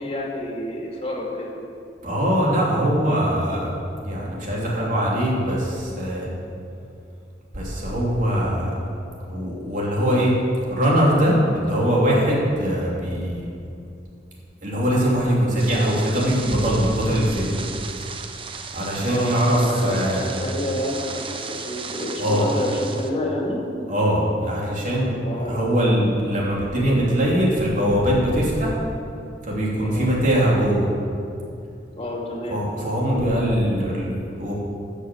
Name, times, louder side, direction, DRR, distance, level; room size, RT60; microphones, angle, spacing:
voice 1, 0.0-1.5 19.1-23.6 25.2-25.8 29.8-30.1 31.9-32.6, left 1 dB, 35° left, -2 dB, 2.3 m, -29 dB
voice 2, 2.0-6.3 7.5-8.8 9.3-10.3 10.7-13.5 14.6-17.5 18.5-20.3 22.2-22.5 23.9-28.8 29.4-30.9 32.5-34.5, equal, 50° right, -4 dB, 3.1 m, -22 dB
sound 1, 15.6-23.1, right 5 dB, 30° right, 0.7 m, -35 dB
12.5 x 6.6 x 7.8 m, 2.5 s
head